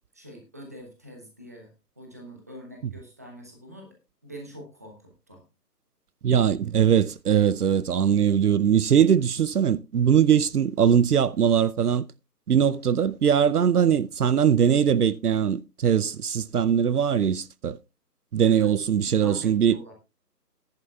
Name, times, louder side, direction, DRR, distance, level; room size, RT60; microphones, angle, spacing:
voice 1, 0.1-4.0 4.2-5.4 18.5-18.7 19.0-19.9, equal, 10° right, 0.8 m, -44 dB
voice 2, 6.2-12.1 12.5-17.8 18.3-19.8, right 8 dB, 65° right, 0.6 m, -21 dB
16.5 x 10.5 x 2.3 m
figure-of-eight pair, 160°, 49 cm